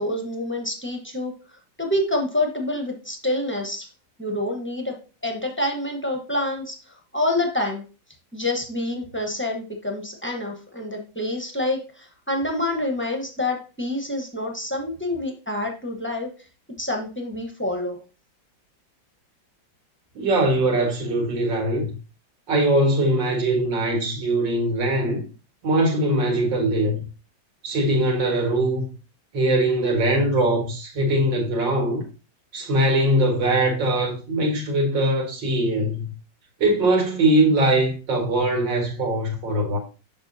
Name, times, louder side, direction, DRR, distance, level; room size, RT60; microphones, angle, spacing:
voice 1, 0.0-1.3 1.8-3.9 4.2-4.9 5.2-7.8 8.3-16.3 16.8-18.0, left 1 dB, 10° left, 0.5 m, -27 dB
voice 2, 20.2-21.9 22.5-25.2 25.6-27.0 27.6-28.9 29.3-32.0 32.5-36.1 36.6-39.8, right 1 dB, 65° right, 2.5 m, -21 dB
7.0 x 5.9 x 2.7 m
omnidirectional pair, 2.2 m